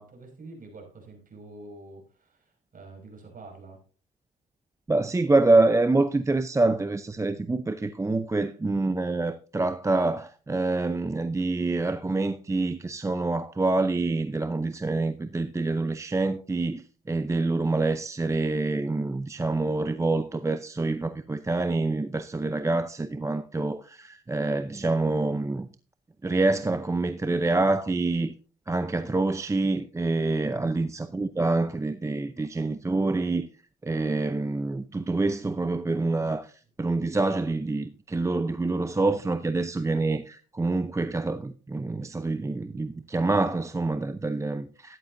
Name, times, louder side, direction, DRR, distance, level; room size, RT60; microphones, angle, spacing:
voice 1, 0.0-3.8 30.4-30.7, right 2 dB, 45° right, 5.6 m, -47 dB
voice 2, 4.9-25.7 26.2-28.3 28.7-33.5 33.8-36.5 36.8-45.0, right 2 dB, 15° right, 0.6 m, -26 dB
13.5 x 11.0 x 2.6 m
cardioid pair, 90°, 20 cm